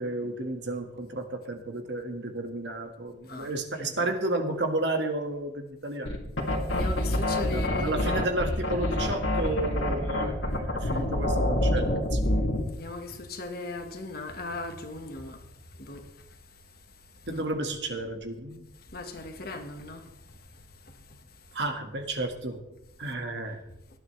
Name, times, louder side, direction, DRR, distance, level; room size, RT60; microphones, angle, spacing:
voice 1, 0.0-6.2 7.4-11.9 12.1-12.3 17.3-18.6 21.5-22.6 23.0-23.6, right 2 dB, 60° right, 1.9 m, -32 dB
sound 1, 6.1-12.7, left 1 dB, 90° left, 2.7 m, -27 dB
voice 2, 6.7-8.0 12.7-15.4 15.8-16.1 17.3-17.4 18.9-20.1, left 2 dB, 50° left, 1.6 m, -38 dB
18.5 x 11.5 x 3.3 m
head